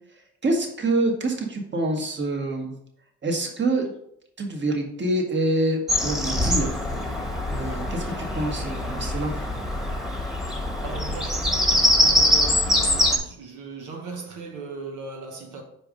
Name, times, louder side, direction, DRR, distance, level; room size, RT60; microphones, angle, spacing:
voice 1, 0.4-2.7 3.2-3.9 4.4-6.8 7.5-9.3, right 2 dB, 35° right, 1.5 m, -26 dB
Bird vocalization bird call bird song, 5.9-13.2, left 1 dB, ahead, 1.3 m, -23 dB
voice 2, 10.8-15.6, right 4 dB, 80° right, 1.1 m, -38 dB
5.1 x 4.6 x 5.1 m
cardioid pair, 90°, 30 cm